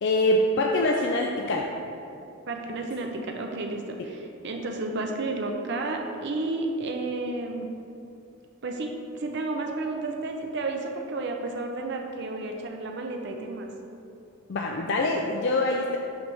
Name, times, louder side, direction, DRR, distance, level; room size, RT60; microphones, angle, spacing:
voice 1, 0.0-1.7 14.5-16.0, left 1 dB, 55° left, 0 dB, 0.4 m, -24 dB
voice 2, 2.5-7.7 8.6-13.7, right 2 dB, 50° right, 2 dB, 0.5 m, -32 dB
5.9 x 3.3 x 5.4 m, 2.6 s
head